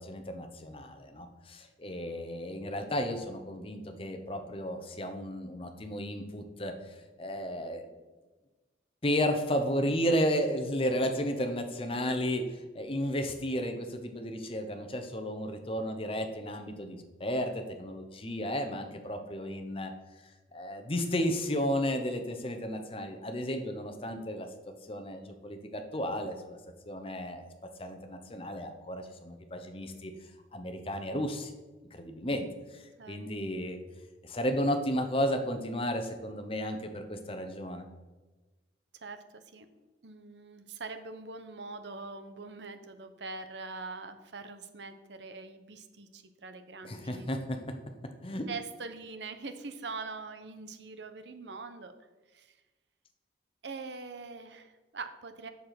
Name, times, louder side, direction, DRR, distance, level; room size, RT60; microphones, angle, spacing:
voice 1, 0.0-7.9 9.0-19.9 20.5-24.5 24.8-26.6 26.8-27.5 27.8-30.1 30.5-31.5 31.9-33.8 34.2-37.8 46.8-47.7 48.2-48.5, equal, 30° left, 7 dB, 0.9 m, -33 dB
voice 2, 39.0-39.7 40.0-47.3 48.5-51.9 52.3-52.6 53.6-55.5, right 4 dB, 80° right, 9 dB, 0.9 m, -43 dB
7.6 x 6.9 x 5.9 m, 1.2 s
head